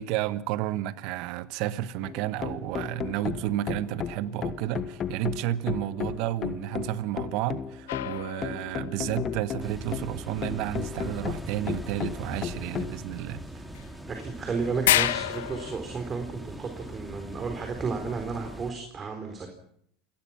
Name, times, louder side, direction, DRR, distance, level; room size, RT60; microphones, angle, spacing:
voice 1, 0.0-13.4, right 13 dB, 65° right, 1.2 m, -31 dB
sound 1, 2.0-13.0, left 8 dB, 40° left, 1.5 m, -34 dB
sound 2, 7.9-9.2 13.8-13.9 14.2-14.3 14.8-15.8, left 13 dB, 85° left, 0.8 m, -27 dB
sound 3, 9.6-18.7, equal, 5° right, 3.2 m, -41 dB
voice 2, 14.1-19.5, right 4 dB, 30° right, 4.1 m, -33 dB
28.0 x 18.0 x 6.0 m
supercardioid pair, 100°, 0 cm